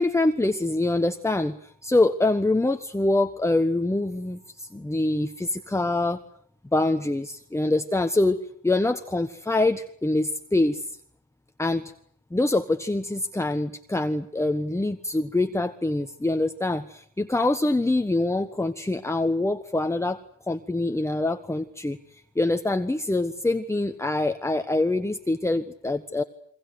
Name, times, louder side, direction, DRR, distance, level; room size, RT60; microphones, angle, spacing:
voice 1, 0.0-6.2 6.7-11.0 11.6-11.9 12.3-20.2 20.5-22.0 22.3-26.2, left 2 dB, 10° left, 7 dB, 1.4 m, -25 dB
28.5 x 23.5 x 8.1 m, 0.63 s
cardioid pair, 90°, 30 cm